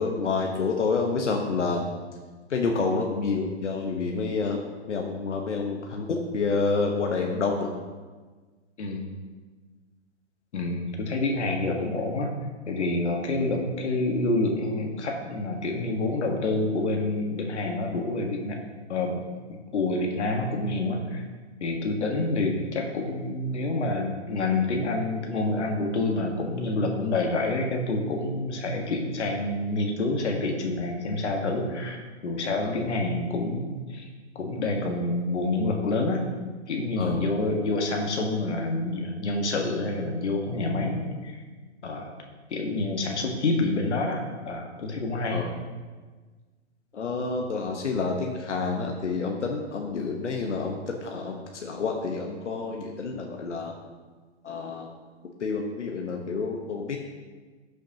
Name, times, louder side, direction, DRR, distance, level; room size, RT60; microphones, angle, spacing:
voice 1, 0.0-1.9 2.5-4.6 4.9-7.7 32.5-32.7 37.0-37.2 45.3-45.5 46.9-53.7 54.4-54.9 55.4-57.0, left 4 dB, 90° left, 1 dB, 1.2 m, -28 dB
voice 2, 10.5-12.3 12.7-18.6 18.9-21.2 21.6-32.0 32.2-34.1 34.3-36.3 36.7-41.4 41.8-42.1 42.5-45.4, left 2 dB, 75° left, 2 dB, 1.6 m, -27 dB
13.5 x 6.3 x 2.9 m, 1.4 s
hypercardioid pair, 145°, 35 cm